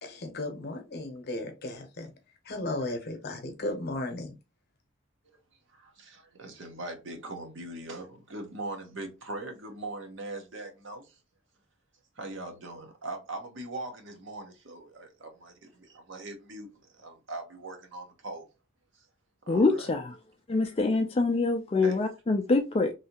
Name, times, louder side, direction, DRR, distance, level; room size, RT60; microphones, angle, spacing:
voice 1, 0.0-2.1 2.5-4.3, left 2 dB, 50° left, 0.8 m, -35 dB
voice 2, 5.7-11.1 12.2-18.5 19.5-19.9 21.8-22.0, right 2 dB, 60° right, 0.9 m, -41 dB
voice 3, 19.5-20.0 20.5-22.9, left 3 dB, 25° left, 0.3 m, -25 dB
3.2 x 2.7 x 2.8 m
head